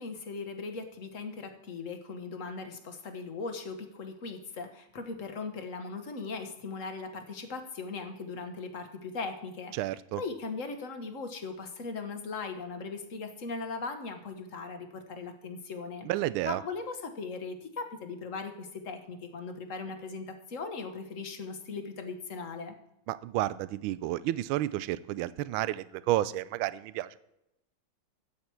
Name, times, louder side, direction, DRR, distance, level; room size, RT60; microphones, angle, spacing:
voice 1, 0.0-9.7 10.2-16.1 16.4-22.7, left 4 dB, 45° left, 6 dB, 1.3 m, -39 dB
voice 2, 9.7-10.2 16.1-16.6 23.1-27.2, right 15 dB, 80° right, 17 dB, 1.3 m, -31 dB
12.5 x 8.7 x 4.6 m, 0.85 s
omnidirectional pair, 2.4 m